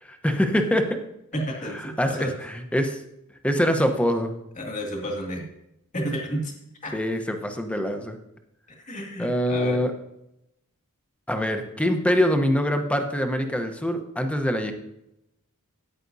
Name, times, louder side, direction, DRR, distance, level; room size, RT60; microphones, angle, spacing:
voice 1, 0.0-1.0 2.0-2.3 2.7-3.0 3.4-4.3 6.9-8.2 9.2-9.9 11.3-14.7, equal, 5° left, 6 dB, 0.9 m, -24 dB
voice 2, 1.3-2.4 4.6-5.5 5.9-6.5 6.8-7.0 8.7-9.8, equal, 35° left, 0 dB, 2.2 m, -31 dB
14.0 x 9.9 x 2.7 m, 0.84 s
head